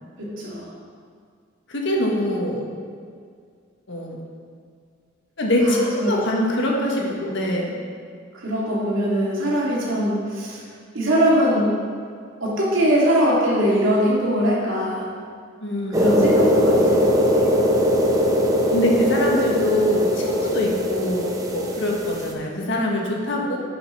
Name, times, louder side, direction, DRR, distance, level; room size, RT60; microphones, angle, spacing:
voice 1, 0.2-0.7 5.6-6.1 7.0-7.1 8.3-10.6 10.9-11.7 12.4-15.1 15.9-17.2, equal, 75° right, -5 dB, 2.6 m, -21 dB
voice 2, 1.7-2.6 3.9-4.2 5.4-7.7 15.6-16.2 18.7-23.6, left 1 dB, 65° left, -1 dB, 1.6 m, -23 dB
sound 1, 15.9-22.3, equal, 20° right, 0.9 m, -20 dB
9.9 x 5.6 x 5.6 m, 2.1 s
head